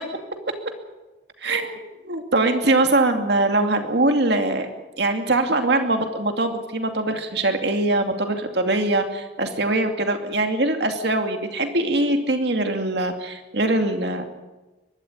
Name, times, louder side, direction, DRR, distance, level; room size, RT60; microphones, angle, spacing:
voice 1, 1.4-4.7 5.0-14.2, right 2 dB, 60° right, 5 dB, 2.5 m, -22 dB
22.5 x 12.5 x 9.4 m, 1.1 s
head